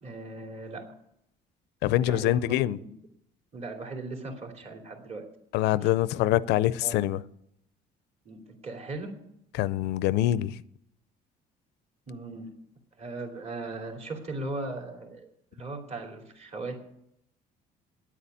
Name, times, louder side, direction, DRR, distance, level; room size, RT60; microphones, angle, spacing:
voice 1, 0.0-0.9 2.0-2.4 2.8-2.9 3.5-5.3 5.8-5.9 6.8-7.0 8.2-9.1 12.1-12.5 13.0-16.8, right 2 dB, 40° right, 3.0 m, -38 dB
voice 2, 1.8-2.8 5.5-7.2 9.5-10.5, left 14 dB, 85° left, 0.5 m, -25 dB
9.5 x 8.5 x 9.1 m
cardioid pair, 110°, 17 cm